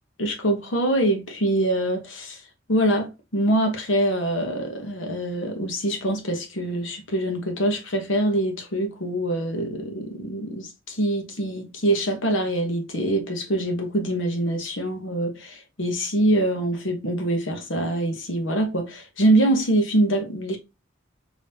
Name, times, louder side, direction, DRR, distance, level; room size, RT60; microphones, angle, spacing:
voice 1, 0.2-2.4 2.7-20.6, right 1 dB, 80° left, 1.2 m, -24 dB
5.2 x 3.1 x 2.8 m
head